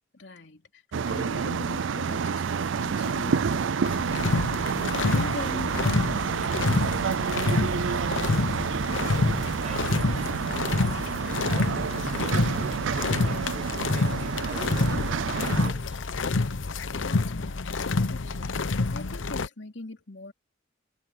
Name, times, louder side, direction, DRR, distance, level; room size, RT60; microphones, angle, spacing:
voice 1, 0.1-6.9 16.9-20.3, left 2 dB, 65° left, 3.0 m, -42 dB
sound 1, 0.9-15.7, right 6 dB, 80° right, 0.5 m, -29 dB
sound 2, 3.8-19.5, left 3 dB, 85° left, 0.8 m, -28 dB
voice 2, 9.5-10.3 10.5-10.9 11.2-16.2, right 2 dB, 35° right, 7.8 m, -46 dB
head